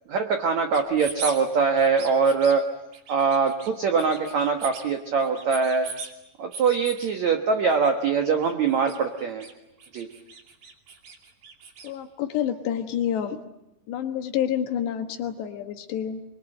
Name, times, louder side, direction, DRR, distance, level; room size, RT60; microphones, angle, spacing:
voice 1, 0.1-2.6 3.1-5.9 6.4-9.4 9.9-10.1, right 5 dB, 75° right, 5 dB, 1.6 m, -23 dB
rubber ducky squeeze, 0.7-1.4 1.7-2.5 2.9-3.7 4.0-4.9 5.2-6.1 6.5-7.1 7.7-7.9 8.2-9.5 9.8-11.9, right 5 dB, 55° right, 4.1 m, -39 dB
voice 2, 11.8-13.4 13.9-16.2, left 9 dB, 70° left, 7 dB, 3.4 m, -28 dB
24.5 x 23.5 x 9.0 m, 0.89 s
omnidirectional pair, 5.3 m